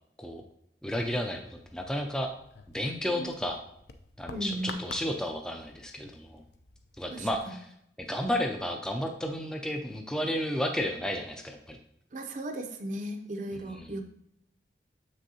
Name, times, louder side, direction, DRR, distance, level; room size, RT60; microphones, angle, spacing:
voice 1, 0.8-2.3 2.7-3.6 4.2-6.4 7.0-7.7 8.0-11.8 13.7-14.0, equal, 5° left, 3 dB, 0.4 m, -32 dB
sound 1, 0.9-7.4, left 4 dB, 65° left, 0.5 m, -50 dB
voice 2, 4.3-4.8 7.1-7.5 12.1-14.0, right 1 dB, 45° right, 4 dB, 0.6 m, -36 dB
7.4 x 6.2 x 2.8 m, 0.76 s
head